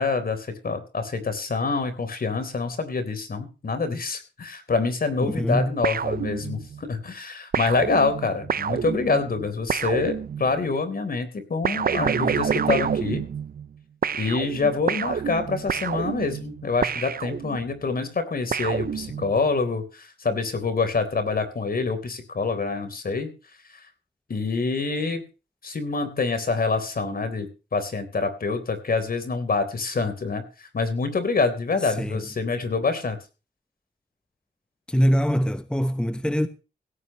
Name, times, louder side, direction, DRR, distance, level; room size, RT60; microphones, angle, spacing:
voice 1, 0.0-13.3 14.1-23.3 24.3-25.2 25.6-33.2, left 4 dB, 55° left, 3.8 m, -26 dB
voice 2, 5.2-5.7 31.8-32.2 34.9-36.5, equal, 5° left, 1.0 m, -23 dB
sound 1, 5.8-6.8 7.5-10.7 11.6-13.8 14.0-17.8 18.5-19.5, right 7 dB, 55° right, 0.6 m, -28 dB
17.5 x 15.0 x 3.1 m
wide cardioid pair, 110°, 18 cm